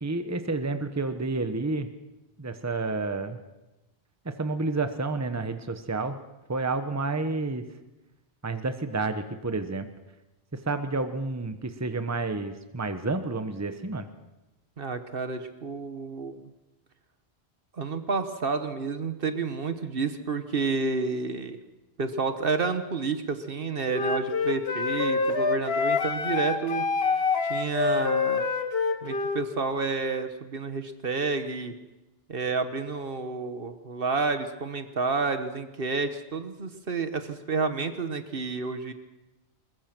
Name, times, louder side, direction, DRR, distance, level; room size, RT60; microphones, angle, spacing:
voice 1, 0.0-1.9 2.4-3.4 4.2-6.2 6.5-7.6 8.4-9.9 10.7-14.1, right 3 dB, 15° right, 9 dB, 1.0 m, -30 dB
voice 2, 14.8-16.3 17.7-21.6 22.0-26.8 27.4-28.5 29.0-31.7 32.3-38.9, right 4 dB, 60° right, 9 dB, 1.4 m, -30 dB
Wind instrument woodwind instrument, 23.9-29.4, left 4 dB, 70° left, 1.5 m, -26 dB
21.5 x 20.5 x 6.1 m, 1.0 s
omnidirectional pair, 1.1 m